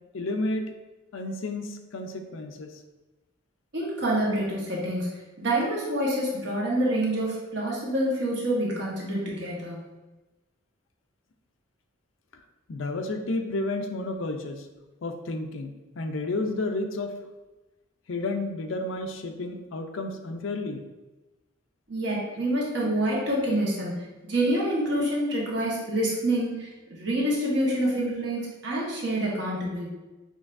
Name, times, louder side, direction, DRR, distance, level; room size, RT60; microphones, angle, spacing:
voice 1, 0.1-0.7 1.1-2.7 12.7-14.7 15.0-17.1 18.1-20.8, left 2 dB, 70° left, 5 dB, 0.5 m, -31 dB
voice 2, 3.7-5.1 5.4-9.9 21.9-29.9, right 1 dB, 55° right, -4 dB, 1.2 m, -27 dB
6.1 x 3.3 x 2.6 m, 1.1 s
head